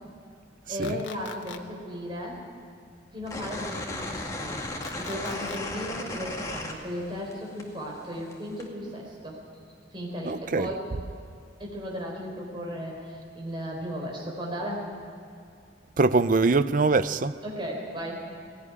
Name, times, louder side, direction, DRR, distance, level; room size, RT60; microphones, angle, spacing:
voice 1, 0.7-2.4 3.1-4.6 4.9-9.4 9.9-10.8 11.6-14.9 17.4-18.3, equal, 25° right, 4.0 m, -35 dB
sound 1, 0.8-1.6 4.8-5.6, left 6 dB, 85° left, 1.3 m, -41 dB
sound 2, 3.3-7.3 7.6-8.7, left 2 dB, 20° left, 2.1 m, -35 dB
voice 2, 10.2-10.7 16.0-17.3, right 3 dB, 45° right, 0.6 m, -23 dB
18.5 x 17.0 x 9.9 m
head